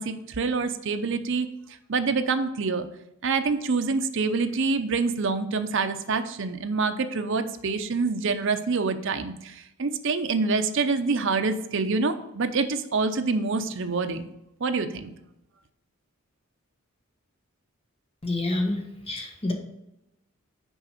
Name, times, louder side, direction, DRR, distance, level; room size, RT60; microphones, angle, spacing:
voice 1, 0.0-1.5 1.9-2.9 3.2-14.2 14.6-15.1, right 4 dB, 60° right, 9 dB, 0.6 m, -26 dB
voice 2, 18.2-18.8 19.1-19.5, left 2 dB, 25° left, 2 dB, 1.3 m, -27 dB
6.3 x 4.9 x 6.6 m, 0.86 s
head